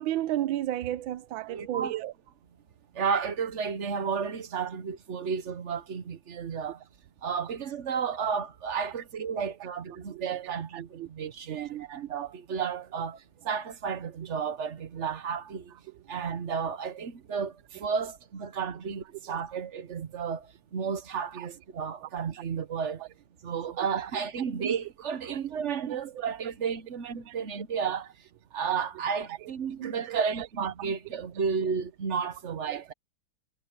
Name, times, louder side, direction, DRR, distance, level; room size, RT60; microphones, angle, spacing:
voice 1, 0.0-2.1 10.1-10.3 10.7-11.1 11.5-11.6 21.4-21.5 23.8-23.9 24.6-24.7 25.9-26.0 27.3-27.4 29.8-30.5, right 13 dB, 85° right, 1.4 m, -33 dB
voice 2, 1.5-2.0 2.9-6.8 7.2-15.7 16.1-23.0 23.4-28.1 28.5-32.9, right 6 dB, 45° right, 1.0 m, -32 dB
omnidirectional pair, 2.1 m